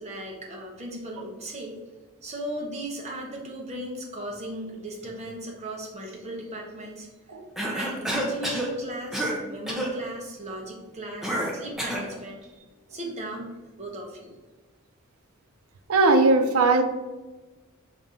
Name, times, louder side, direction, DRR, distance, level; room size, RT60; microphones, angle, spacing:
voice 1, 0.0-1.8 2.2-7.1 7.7-14.3, right 1 dB, 30° right, 0 dB, 0.9 m, -37 dB
Cough, 7.6-8.7 9.1-9.4 9.7-9.9 11.2-12.1, right 1 dB, ahead, 0.7 m, -28 dB
voice 2, 15.9-16.8, right 3 dB, 85° right, 6 dB, 0.5 m, -19 dB
5.3 x 2.8 x 3.6 m, 1.2 s
head